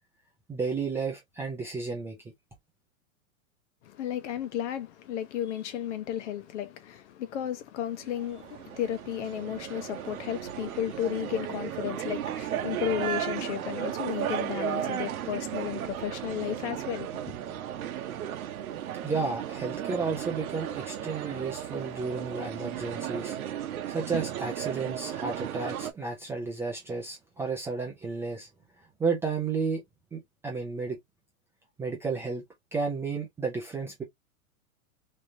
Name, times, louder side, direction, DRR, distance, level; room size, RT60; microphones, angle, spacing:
voice 1, 0.5-2.2 19.0-23.4 23.9-28.5 29.0-29.8 30.1-31.0 31.8-32.4 32.7-34.0, right 4 dB, 5° right, 0.5 m, -32 dB
voice 2, 3.8-17.1, left 10 dB, 55° left, 0.9 m, -33 dB
sound 1, 7.9-25.9, right 10 dB, 80° right, 1.0 m, -35 dB
3.5 x 3.1 x 2.6 m
hypercardioid pair, 155°, 43 cm